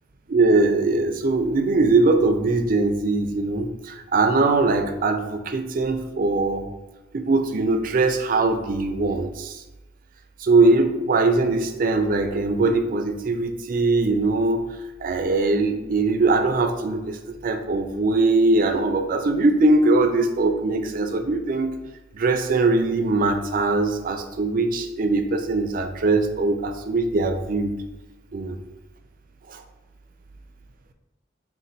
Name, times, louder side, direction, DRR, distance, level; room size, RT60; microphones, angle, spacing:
voice 1, 0.3-6.7 7.1-9.6 10.4-14.6 15.0-21.7 22.1-27.8 28.3-28.6 29.5-29.6, right 3 dB, 50° right, 6 dB, 0.4 m, -21 dB
3.9 x 2.2 x 4.2 m, 1.0 s
head